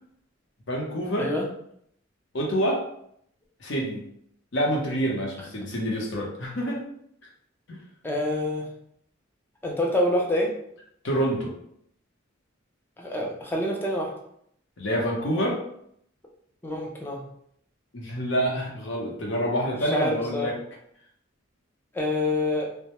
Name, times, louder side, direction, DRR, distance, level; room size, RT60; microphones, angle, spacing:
voice 1, 0.7-1.3 2.3-2.8 3.6-4.0 4.5-6.8 7.7-7.8 11.0-11.5 14.8-15.6 17.9-20.6, equal, 65° left, -2 dB, 0.7 m, -27 dB
voice 2, 8.0-8.7 9.6-10.5 13.0-14.1 16.6-17.2 19.8-20.5 21.9-22.7, left 1 dB, 10° left, 0 dB, 0.4 m, -26 dB
2.2 x 2.0 x 2.8 m, 0.70 s
head